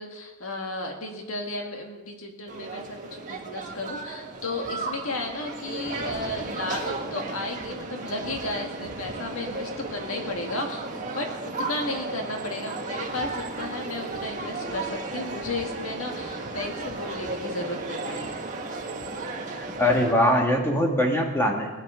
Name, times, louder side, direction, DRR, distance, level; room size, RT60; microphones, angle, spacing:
voice 1, 0.0-10.8 11.1-18.4, left 2 dB, 75° left, 2 dB, 1.8 m, -34 dB
sound 1, 2.5-20.1, right 3 dB, 35° right, 1.6 m, -34 dB
voice 2, 19.6-21.7, left 1 dB, 10° left, 1 dB, 1.8 m, -22 dB
19.5 x 10.0 x 5.0 m, 1.2 s
head